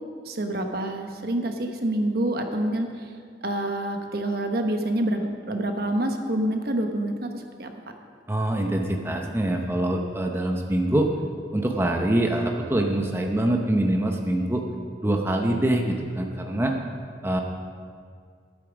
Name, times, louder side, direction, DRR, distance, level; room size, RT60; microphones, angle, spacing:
voice 1, 0.2-2.9 3.4-7.7, right 1 dB, 60° right, 5 dB, 1.1 m, -27 dB
voice 2, 8.3-11.1 11.5-14.6 15.0-16.7 17.2-17.4, right 1 dB, 15° right, 2 dB, 0.7 m, -24 dB
12.0 x 8.7 x 6.2 m, 2.1 s
head